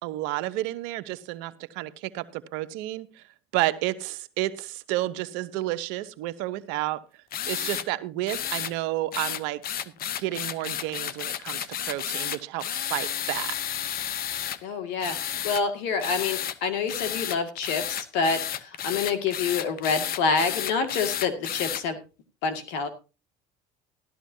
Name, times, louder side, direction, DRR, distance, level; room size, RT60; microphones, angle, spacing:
voice 1, 0.0-3.2 3.5-7.0 7.4-9.6 10.2-13.5, right 15 dB, 80° right, 13 dB, 0.9 m, -31 dB
sound 1, 7.3-7.9 8.3-8.7 9.1-14.6 15.0-15.6 16.0-16.6 16.9-21.8, left 10 dB, 50° left, 0.9 m, -32 dB
voice 2, 14.6-18.4 18.8-22.0 22.4-22.9, left 5 dB, 75° left, 8 dB, 2.2 m, -27 dB
15.5 x 12.5 x 2.8 m, 0.31 s
supercardioid pair, 80°, 19 cm